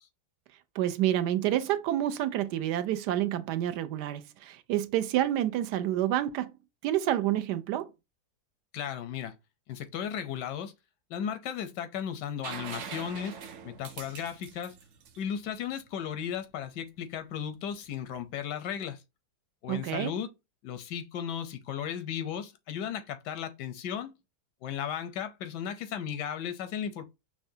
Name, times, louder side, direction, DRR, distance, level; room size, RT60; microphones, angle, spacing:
voice 1, 0.7-6.5 6.8-7.9 19.7-20.1, right 12 dB, 80° right, 1.2 m, -28 dB
voice 2, 8.7-9.4 9.7-10.7 11.1-13.4 13.6-14.7 15.2-19.0 19.6-20.3 20.6-24.1 24.6-27.0, left 8 dB, 90° left, 1.3 m, -35 dB
sound 1, 12.4-16.1 18.0-18.1, right 7 dB, 60° right, 0.8 m, -43 dB
5.8 x 2.2 x 2.7 m
omnidirectional pair, 1.8 m